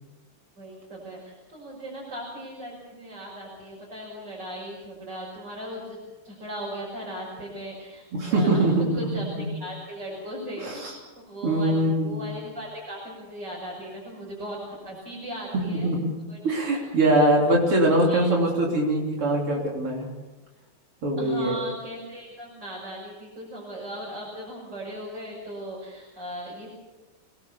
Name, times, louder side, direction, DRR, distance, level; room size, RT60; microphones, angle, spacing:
voice 1, 0.6-6.0 6.2-15.9 16.3-16.4 16.7-16.8 18.1-18.2 21.2-26.7, equal, 50° right, -4 dB, 6.7 m, -38 dB
voice 2, 8.1-9.5 10.6-11.0 11.4-12.3 15.5-16.1 16.4-20.1 21.0-21.6, right 1 dB, 80° right, -1 dB, 4.2 m, -23 dB
27.0 x 18.0 x 7.0 m, 1.2 s
omnidirectional pair, 2.4 m